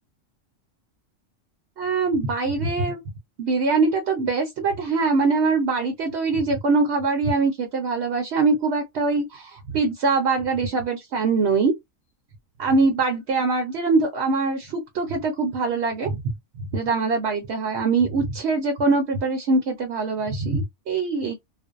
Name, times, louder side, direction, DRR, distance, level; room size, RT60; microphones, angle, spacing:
voice 1, 1.8-3.0 3.4-11.7 12.6-16.2 16.6-21.3, right 3 dB, 60° right, 0.9 m, -23 dB
2.5 x 2.1 x 2.4 m
omnidirectional pair, 1.4 m